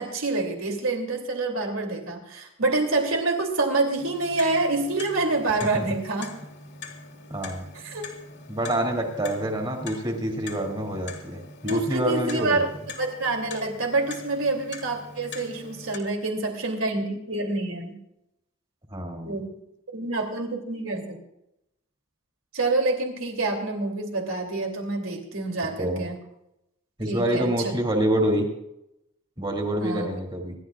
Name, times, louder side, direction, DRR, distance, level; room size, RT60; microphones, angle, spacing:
voice 1, 0.0-6.3 7.7-8.0 11.6-12.7 13.0-18.0 19.2-19.5 19.9-21.2 22.5-26.2 27.1-27.5 29.8-30.1, right 3 dB, 75° right, 2 dB, 3.0 m, -27 dB
Clock, 4.0-16.0, left 4 dB, 55° left, 2.4 m, -43 dB
voice 2, 7.3-7.6 8.5-12.6 18.9-19.3 25.8-26.0 27.0-28.5 29.4-30.5, right 1 dB, 20° right, 1 dB, 2.7 m, -26 dB
25.5 x 12.0 x 2.5 m, 0.85 s
head